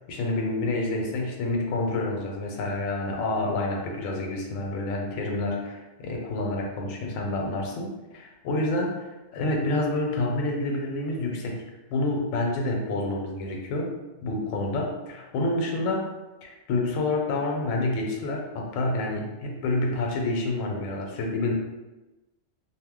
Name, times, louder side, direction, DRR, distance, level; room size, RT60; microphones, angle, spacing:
voice 1, 0.1-11.6 11.9-13.9 14.2-16.1 16.4-21.5, left 2 dB, 85° left, 0 dB, 1.0 m, -28 dB
2.3 x 2.1 x 3.5 m, 1.1 s
omnidirectional pair, 1.3 m